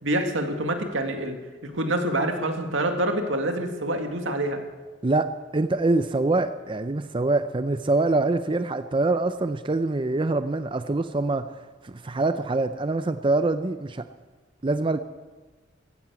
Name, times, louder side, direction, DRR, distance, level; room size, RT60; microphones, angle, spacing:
voice 1, 0.0-1.4 1.6-4.6, right 1 dB, 90° right, 5 dB, 2.0 m, -26 dB
voice 2, 5.0-11.5 11.8-14.0 14.6-15.0, right 2 dB, 25° right, 10 dB, 0.5 m, -24 dB
15.0 x 11.0 x 8.2 m, 1.3 s
head